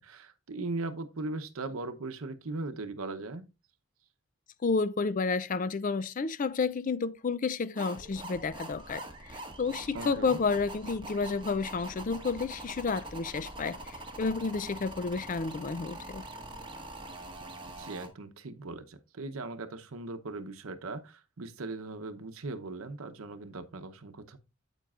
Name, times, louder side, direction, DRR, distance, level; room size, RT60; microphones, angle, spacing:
voice 1, 0.0-3.5 9.9-10.4 17.6-24.4, right 3 dB, 80° right, 0.8 m, -39 dB
voice 2, 4.6-16.2, left 4 dB, 40° left, 0.4 m, -31 dB
sound 1, 7.8-18.1, right 1 dB, 25° right, 1.6 m, -43 dB
9.1 x 8.1 x 2.4 m
head